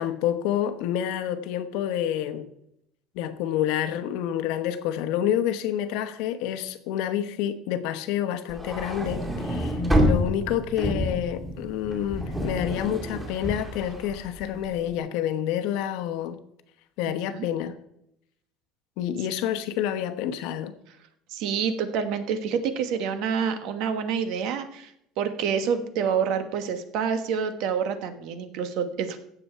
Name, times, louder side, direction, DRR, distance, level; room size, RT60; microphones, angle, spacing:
voice 1, 0.0-2.5 3.1-16.4 17.0-17.8 19.0-20.7, left 10 dB, 70° left, 10 dB, 1.0 m, -28 dB
sound 1, 8.5-14.8, equal, 10° right, 2.5 m, -28 dB
voice 2, 17.1-17.4 21.3-29.2, right 7 dB, 60° right, 9 dB, 1.2 m, -28 dB
15.5 x 7.1 x 4.5 m, 0.77 s
cardioid pair, 165°, 0 cm